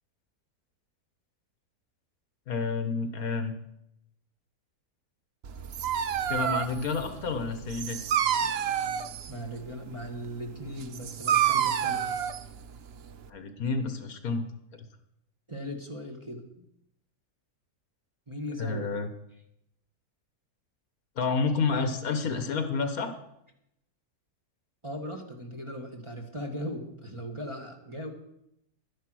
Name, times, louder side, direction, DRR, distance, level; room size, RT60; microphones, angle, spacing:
voice 1, 2.5-3.5 6.3-8.0 8.4-8.5 13.3-14.4 18.6-19.1 21.2-23.1, left 4 dB, 70° left, 8 dB, 1.6 m, -29 dB
Dog, 5.4-13.3, right 9 dB, 60° right, 0.7 m, -29 dB
voice 2, 9.3-12.1 15.5-16.4 18.3-18.8 24.8-28.1, equal, 20° right, 2 dB, 1.4 m, -38 dB
11.5 x 10.0 x 6.2 m, 0.80 s
omnidirectional pair, 1.6 m